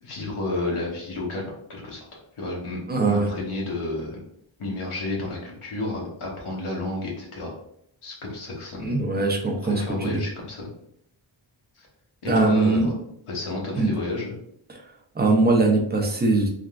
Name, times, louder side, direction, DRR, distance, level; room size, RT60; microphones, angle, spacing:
voice 1, 0.0-2.8 3.1-4.2 4.6-7.5 8.0-8.9 9.6-10.7 11.8-11.9 12.2-12.9 13.3-14.4, left 2 dB, 90° left, -3 dB, 0.9 m, -31 dB
voice 2, 2.9-3.3 8.8-10.2 12.3-12.9 13.7-13.9 14.7-14.8 15.2-16.5, right 3 dB, 20° right, 1 dB, 0.5 m, -21 dB
3.4 x 2.4 x 2.3 m, 0.72 s
wide cardioid pair, 95°, 49 cm